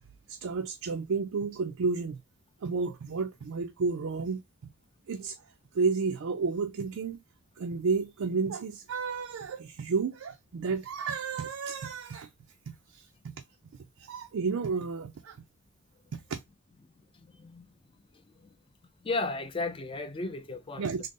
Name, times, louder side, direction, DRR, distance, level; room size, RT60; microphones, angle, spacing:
voice 1, 0.3-2.2 2.6-4.4 5.1-5.4 5.7-7.2 7.6-12.3 12.7-13.4 14.0-15.4 16.1-16.4 20.8-21.1, right 4 dB, 80° right, 0.4 m, -31 dB
voice 2, 17.1-17.7 18.3-18.5 19.0-20.9, left 3 dB, 25° left, 0.4 m, -34 dB
3.8 x 2.0 x 3.5 m
head